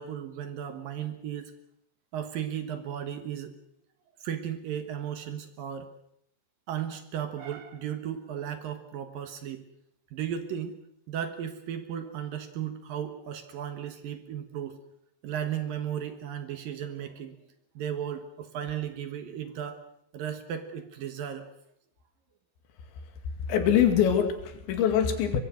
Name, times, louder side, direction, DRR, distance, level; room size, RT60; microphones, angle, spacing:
voice 1, 0.0-1.5 2.1-3.5 4.2-5.9 6.7-9.6 10.1-10.8 11.1-14.8 15.2-17.4 17.7-19.8 20.1-21.5, right 9 dB, 65° right, 9 dB, 2.7 m, -35 dB
voice 2, 23.5-25.4, left 9 dB, 80° left, 7 dB, 4.6 m, -23 dB
24.0 x 22.0 x 6.4 m, 0.74 s
omnidirectional pair, 5.1 m